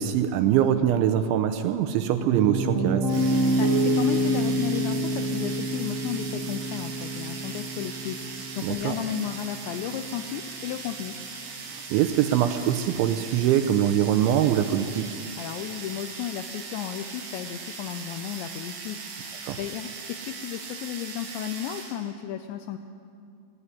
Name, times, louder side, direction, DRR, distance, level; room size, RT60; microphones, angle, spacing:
voice 1, 0.0-3.1 8.6-9.0 11.7-15.2 19.5-19.6, right 10 dB, 80° right, 8 dB, 2.9 m, -23 dB
Piano, 2.2-10.3, right 1 dB, 25° right, 2.0 m, -27 dB
sound 1, 3.1-22.0, right 4 dB, 55° right, 4.2 m, -39 dB
voice 2, 3.6-11.2 15.4-19.1 19.6-22.8, left 10 dB, 85° left, 7 dB, 2.6 m, -34 dB
17.5 x 17.0 x 10.0 m, 2.5 s
omnidirectional pair, 5.9 m